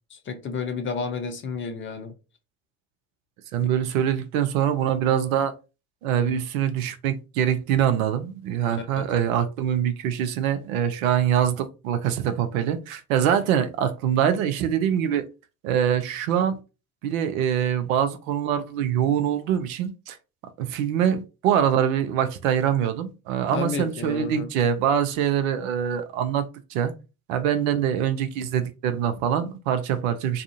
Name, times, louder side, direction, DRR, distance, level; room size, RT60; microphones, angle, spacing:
voice 1, 0.1-2.1 8.7-9.1 23.5-24.5, left 5 dB, 30° left, 0.5 m, -31 dB
voice 2, 3.5-5.5 6.0-15.2 15.6-16.6 17.0-20.2 20.6-26.9 27.3-30.4, right 9 dB, 70° right, 0.6 m, -24 dB
2.4 x 2.4 x 2.6 m
hypercardioid pair, 65°, 43 cm